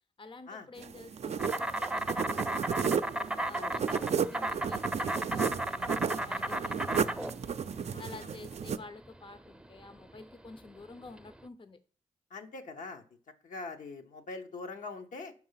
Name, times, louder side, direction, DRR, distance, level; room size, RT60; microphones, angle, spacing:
voice 1, 0.2-3.0 3.4-7.5 8.0-11.8, left 3 dB, 40° left, 0.6 m, -50 dB
sound 1, 0.8-8.8, right 7 dB, 55° right, 0.4 m, -34 dB
Insect, 1.4-11.4, right 1 dB, 5° right, 0.6 m, -35 dB
voice 2, 7.9-8.3 12.3-13.0 13.4-15.3, left 3 dB, 75° left, 0.9 m, -43 dB
5.5 x 4.7 x 5.5 m
supercardioid pair, 45°, 13 cm